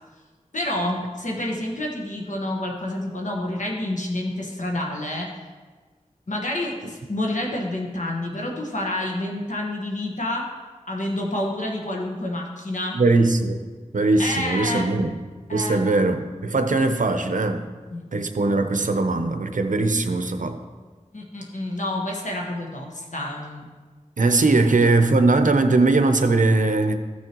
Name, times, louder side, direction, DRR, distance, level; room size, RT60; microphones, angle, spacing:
voice 1, 0.5-5.3 6.3-10.5 10.9-13.0 14.2-14.9 15.5-15.8 17.9-18.2 21.1-23.7, left 1 dB, 70° left, -1 dB, 1.4 m, -28 dB
voice 2, 12.9-13.6 13.9-15.1 15.5-17.7 18.1-20.6 24.2-26.9, right 3 dB, 85° right, 7 dB, 0.6 m, -20 dB
14.5 x 6.3 x 3.0 m, 1.4 s
wide cardioid pair, 60°, 13 cm